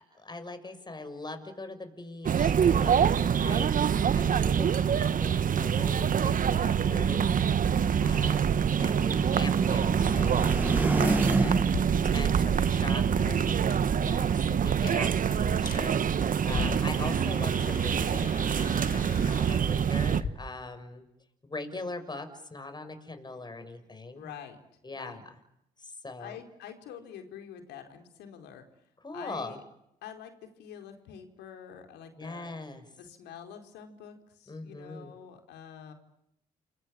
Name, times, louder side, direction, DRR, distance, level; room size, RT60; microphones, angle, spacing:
voice 1, 0.0-7.7 8.0-13.4 14.0-21.0 21.4-24.3 24.8-25.3 25.8-26.4 29.0-29.6 32.2-32.8 34.5-35.2, left 2 dB, 25° left, 8 dB, 6.5 m, -41 dB
sound 1, 2.2-20.2, right 8 dB, 55° right, 1.3 m, -25 dB
voice 2, 6.2-6.8 13.2-13.5 24.2-24.6 24.9-25.2 26.2-28.6 29.1-29.6 30.0-32.5 33.0-35.9, left 8 dB, 85° left, 6 dB, 4.7 m, -46 dB
sound 2, 8.9-12.0, right 1 dB, 10° right, 1.3 m, -32 dB
sound 3, 11.6-20.3, left 5 dB, 55° left, 5.5 m, -41 dB
30.0 x 22.0 x 8.9 m, 0.80 s
supercardioid pair, 65°, 17 cm